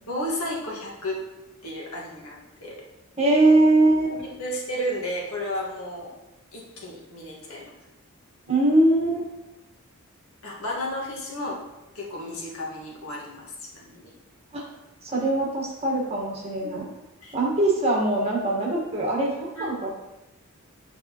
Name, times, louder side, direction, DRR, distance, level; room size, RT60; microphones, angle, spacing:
voice 1, 0.1-1.2 1.6-2.9 4.1-6.1 6.5-7.6 10.4-11.6 11.9-14.1 16.6-16.7 17.2-17.4 19.5-19.7, equal, 75° left, -3 dB, 1.6 m, -33 dB
voice 2, 3.2-4.1 8.5-9.3 14.5-14.6 15.0-16.8 17.3-19.9, right 2 dB, 30° right, -2 dB, 1.5 m, -22 dB
9.0 x 5.1 x 3.0 m, 0.98 s
head